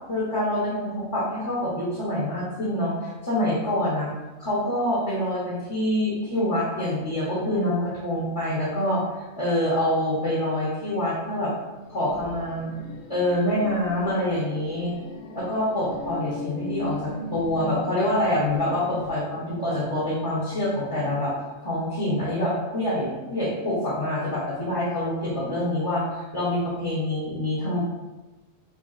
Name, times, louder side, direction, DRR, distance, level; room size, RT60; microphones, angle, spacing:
voice 1, 0.1-4.1 4.4-9.0 9.4-11.5 11.9-12.7 13.1-14.9 15.3-21.3 21.6-27.8, left 1 dB, 30° left, -8 dB, 0.9 m, -26 dB
sound 1, 11.8-19.1, left 3 dB, 90° left, 1.0 m, -38 dB
5.1 x 3.3 x 2.5 m, 1.1 s
omnidirectional pair, 1.3 m